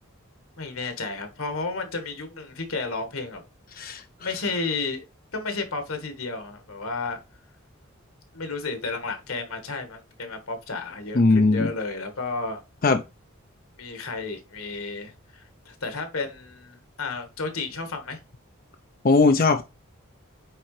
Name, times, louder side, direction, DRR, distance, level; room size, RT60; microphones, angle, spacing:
voice 1, 0.6-3.4 4.2-5.0 5.3-7.2 8.3-12.6 13.8-18.2, left 3 dB, 85° left, 1.6 m, -32 dB
voice 2, 11.1-11.7 12.8-13.0 19.0-19.6, left 3 dB, 45° left, 0.5 m, -18 dB
8.8 x 3.7 x 3.2 m
head